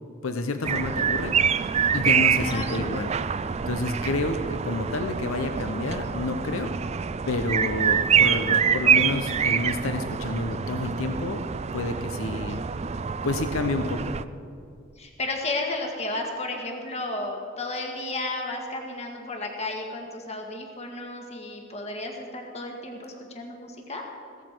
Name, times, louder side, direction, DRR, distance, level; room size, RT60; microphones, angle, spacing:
voice 1, 0.2-1.3 1.6-3.1 3.7-6.7 7.3-12.6 13.2-14.1, left 2 dB, 75° left, 7 dB, 0.8 m, -29 dB
sound 1, 0.6-14.2, right 7 dB, 30° right, 0.4 m, -26 dB
voice 2, 2.4-2.8 15.0-24.0, left 2 dB, 30° left, 1 dB, 1.8 m, -33 dB
16.0 x 14.0 x 4.6 m, 2.3 s
head